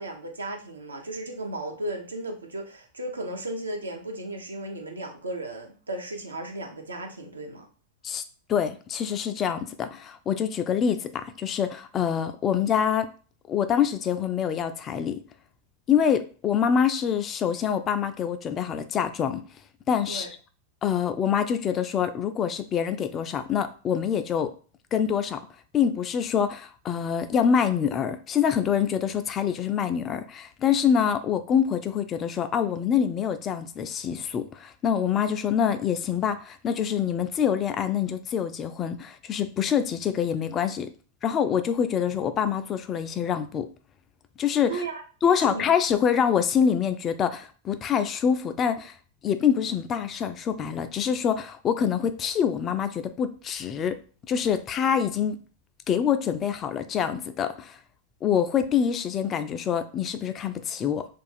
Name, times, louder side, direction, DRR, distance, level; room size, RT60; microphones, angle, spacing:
voice 1, 0.0-7.7 20.1-20.3 44.7-45.0 45.3-45.6, right 2 dB, 75° right, 2 dB, 0.7 m, -35 dB
voice 2, 8.5-13.1 13.5-15.2 15.9-19.4 19.9-20.3 20.8-24.5 24.9-25.4 25.7-40.9 41.2-43.7 44.4-44.8 45.2-48.9 49.2-54.0 54.3-55.4 55.9-57.8 58.2-61.1, left 8 dB, 30° left, 9 dB, 0.3 m, -25 dB
2.5 x 2.4 x 4.0 m, 0.39 s
figure-of-eight pair, 90°, 0 cm